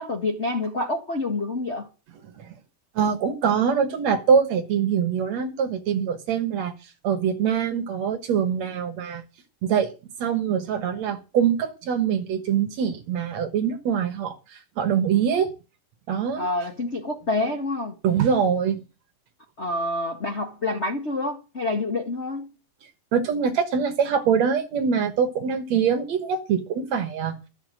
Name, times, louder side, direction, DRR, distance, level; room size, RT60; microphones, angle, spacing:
voice 1, 0.0-1.9 16.4-17.9 19.6-22.5, left 2 dB, 65° left, 0.6 m, -27 dB
voice 2, 3.0-6.7 7.0-9.2 9.6-9.9 10.2-14.3 14.8-15.5 16.1-16.5 18.0-18.8 23.1-27.3, right 7 dB, 60° right, 2.1 m, -23 dB
13.5 x 7.3 x 7.6 m
omnidirectional pair, 4.2 m